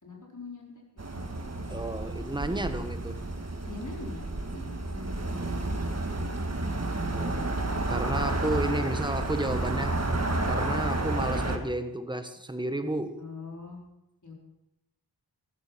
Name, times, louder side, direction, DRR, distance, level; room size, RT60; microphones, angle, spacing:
voice 1, 0.0-1.2 2.5-2.9 3.6-5.5 5.8-6.6 7.9-9.9 10.8-11.1 13.2-13.8 14.2-14.3, left 4 dB, 45° left, -1 dB, 4.5 m, -45 dB
sound 1, 1.0-11.6, right 2 dB, 40° right, 1.8 m, -31 dB
voice 2, 1.7-3.2 7.1-7.6 7.9-10.0 10.4-13.2, right 1 dB, 10° right, 8 dB, 1.3 m, -32 dB
14.0 x 13.0 x 5.9 m, 0.91 s
wide cardioid pair, 60°, 41 cm